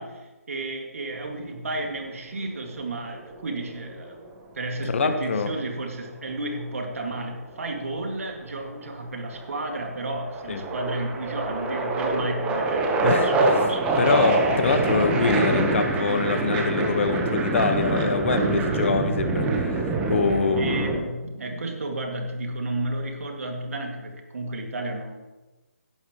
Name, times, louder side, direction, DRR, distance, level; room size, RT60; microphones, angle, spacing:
voice 1, 0.0-4.2 4.5-14.0 20.2-25.2, right 2 dB, 60° right, 3 dB, 2.3 m, -32 dB
sound 1, 3.1-4.2 6.1-7.3 8.3-8.7 9.1-21.0, right 2 dB, 10° right, 1.2 m, -25 dB
voice 2, 4.9-5.5 10.5-10.6 13.0-13.6 14.0-20.9, left 4 dB, 50° left, 8 dB, 1.3 m, -24 dB
16.0 x 11.0 x 3.2 m, 1.1 s
figure-of-eight pair, 150°, 8 cm